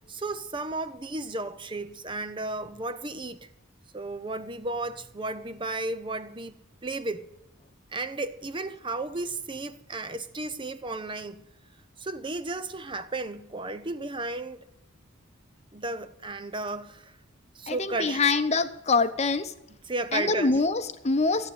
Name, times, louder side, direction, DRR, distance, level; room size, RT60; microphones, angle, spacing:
voice 1, 0.1-3.5 3.9-6.6 6.8-7.2 7.9-11.4 12.0-14.6 15.7-17.1 17.6-18.2 19.8-20.6, right 2 dB, 25° right, 0.6 m, -34 dB
voice 2, 17.7-19.5 20.1-21.5, left 3 dB, 30° left, 0.8 m, -25 dB
14.5 x 9.3 x 7.7 m
head